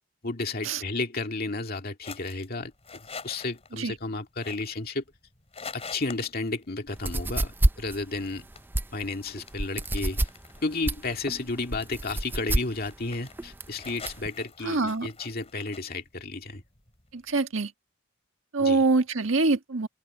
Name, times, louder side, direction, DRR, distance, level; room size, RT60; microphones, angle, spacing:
voice 1, 0.2-2.7 3.2-5.0 5.7-7.5 7.8-8.5 8.9-10.3 10.6-16.6 18.6-18.8, left 3 dB, 50° left, 2.1 m, -32 dB
sound 1, 2.0-17.4, left 5 dB, 30° left, 4.4 m, -48 dB
sound 2, 6.9-14.3, right 1 dB, 10° right, 0.4 m, -28 dB
voice 2, 14.6-15.1 17.1-17.7 18.5-19.9, right 3 dB, 70° right, 1.7 m, -24 dB
open air
head